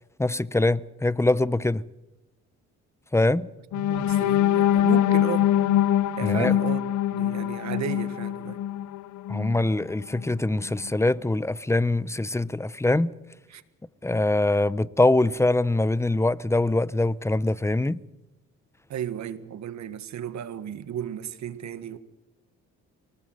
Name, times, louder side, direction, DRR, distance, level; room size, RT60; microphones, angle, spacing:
voice 1, 0.2-1.8 3.1-3.5 6.2-6.5 9.3-13.1 14.0-18.0, left 2 dB, 10° left, 0.7 m, -23 dB
sound 1, 3.7-9.7 10.1-10.3 10.7-10.9, left 11 dB, 75° left, 0.8 m, -23 dB
voice 2, 3.7-5.5 6.2-8.6 13.5-13.6 18.9-22.0, right 9 dB, 65° right, 1.7 m, -34 dB
24.5 x 19.0 x 7.8 m
cardioid pair, 90°, 30 cm